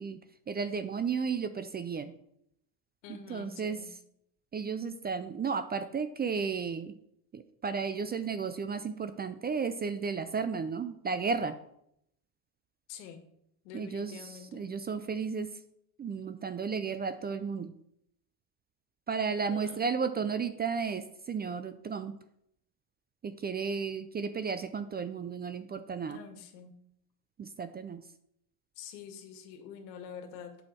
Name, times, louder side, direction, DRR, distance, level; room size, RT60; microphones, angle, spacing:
voice 1, 0.0-2.1 3.1-3.8 4.5-7.0 7.3-11.6 13.7-15.6 16.0-17.7 19.1-22.2 23.2-26.2 27.4-28.0, right 5 dB, 20° right, 11 dB, 0.4 m, -33 dB
voice 2, 3.0-3.9 12.9-13.2 13.6-14.7 19.4-19.8 26.1-26.8 28.8-30.6, left 7 dB, 85° left, 6 dB, 1.7 m, -46 dB
8.5 x 6.4 x 4.5 m, 0.74 s
supercardioid pair, 100°, 49 cm